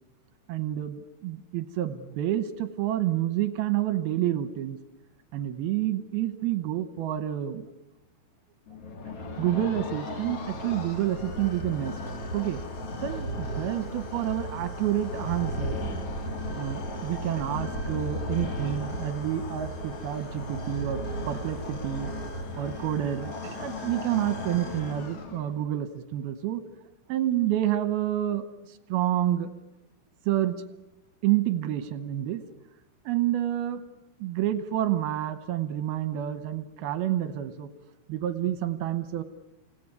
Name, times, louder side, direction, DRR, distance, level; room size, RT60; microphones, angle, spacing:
voice 1, 0.5-4.8 5.3-7.6 9.4-12.0 12.3-12.6 13.0-15.8 16.6-22.1 22.6-26.6 27.1-28.5 28.9-29.5 30.3-30.6 31.2-32.4 33.1-33.8 34.2-37.7 38.1-39.2, right 12 dB, 75° right, 12 dB, 2.5 m, -29 dB
sound 1, 8.7-25.6, equal, 40° left, 3.0 m, -35 dB
28.0 x 17.5 x 9.6 m, 0.95 s
omnidirectional pair, 5.4 m